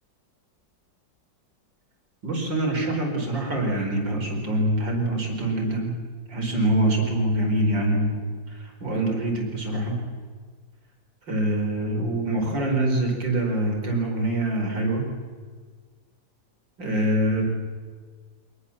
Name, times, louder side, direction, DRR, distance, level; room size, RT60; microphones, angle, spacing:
voice 1, 2.2-6.0 6.3-10.0 11.3-15.1 16.8-17.4, right 1 dB, 80° right, 1 dB, 5.2 m, -25 dB
26.5 x 20.5 x 7.2 m, 1.6 s
omnidirectional pair, 2.0 m